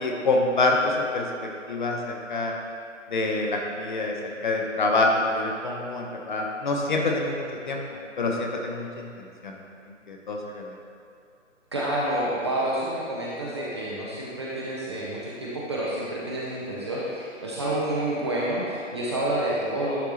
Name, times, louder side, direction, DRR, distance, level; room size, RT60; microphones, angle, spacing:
voice 1, 0.0-1.2 1.7-2.5 3.1-7.8 8.2-9.5 10.1-10.7, left 2 dB, 40° left, 0 dB, 0.8 m, -26 dB
voice 2, 11.7-20.0, right 1 dB, 20° right, -6 dB, 0.6 m, -29 dB
10.5 x 4.6 x 2.9 m, 2.5 s
figure-of-eight pair, 140°, 38 cm